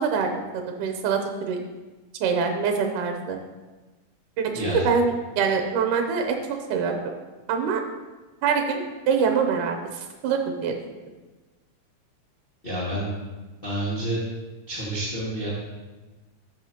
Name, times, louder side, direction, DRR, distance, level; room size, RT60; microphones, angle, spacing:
voice 1, 0.0-1.6 2.2-3.4 4.4-6.4 6.7-7.0 7.5-7.8 8.4-10.7, right 5 dB, 75° right, 4 dB, 2.2 m, -24 dB
voice 2, 12.6-13.1 13.6-14.2 14.7-15.5, right 1 dB, 25° left, -9 dB, 1.4 m, -29 dB
13.5 x 5.6 x 2.9 m, 1.2 s
omnidirectional pair, 3.8 m